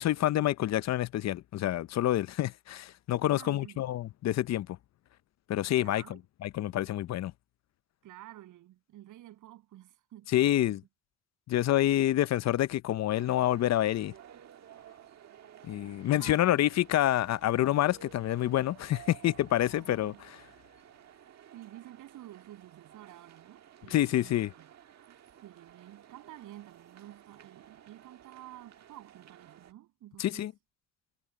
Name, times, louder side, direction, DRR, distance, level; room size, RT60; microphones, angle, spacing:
voice 1, 0.0-4.7 5.5-6.0 6.4-7.3 10.3-10.8 11.5-14.1 15.6-20.1 23.9-24.5 30.2-30.5, left 13 dB, 60° left, 0.6 m, -27 dB
voice 2, 3.3-3.8 5.7-6.2 8.0-10.8 16.2-16.6 19.8-20.2 21.5-24.7 25.1-30.5, right 14 dB, 85° right, 7.4 m, -51 dB
sound 1, 13.1-29.7, right 10 dB, 60° right, 1.5 m, -55 dB
cardioid pair, 90°, 30 cm